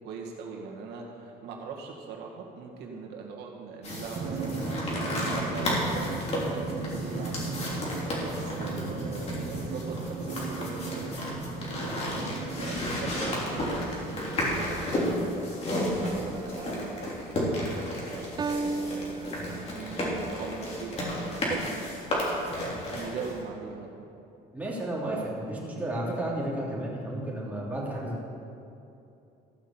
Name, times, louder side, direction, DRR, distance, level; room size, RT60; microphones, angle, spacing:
voice 1, 0.0-7.5 8.2-11.2 11.8-15.5 15.8-19.0 19.5-21.9 22.7-23.9, right 5 dB, 80° right, 0 dB, 2.1 m, -41 dB
sound 1, 3.8-23.4, left 1 dB, 40° left, 3.2 m, -33 dB
Drum, 4.1-15.2, right 3 dB, 50° right, 1.9 m, -36 dB
sound 2, 16.3-17.0 18.4-20.0 21.5-21.6, right 4 dB, 25° right, 0.4 m, -34 dB
voice 2, 24.5-28.3, right 1 dB, 10° right, -5 dB, 3.2 m, -32 dB
14.5 x 5.9 x 7.2 m, 2.7 s
cardioid pair, 110°, 17 cm